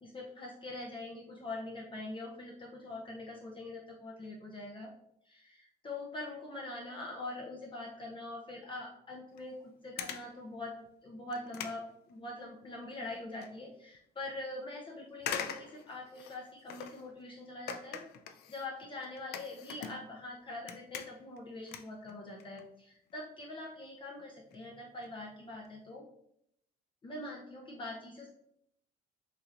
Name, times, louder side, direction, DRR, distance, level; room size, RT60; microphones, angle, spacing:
voice 1, 0.0-4.9 5.2-9.6 9.8-10.8 11.0-18.0 18.5-26.0 27.0-28.3, left 2 dB, 30° left, -2 dB, 0.8 m, -43 dB
sound 1, 9.4-9.5 10.0-10.4 10.9-11.0 11.3-12.7 13.0-13.5 13.9-14.0 15.2-17.1 17.7-20.3 20.6-21.4 21.7-22.6 22.9-23.1 23.8-23.9 24.2-24.3 24.5-24.6 24.9-25.1 25.5-25.7 25.9-26.0, left 7 dB, 70° left, 0.5 m, -43 dB
5.9 x 3.1 x 2.5 m, 0.74 s
cardioid pair, 110°, 17 cm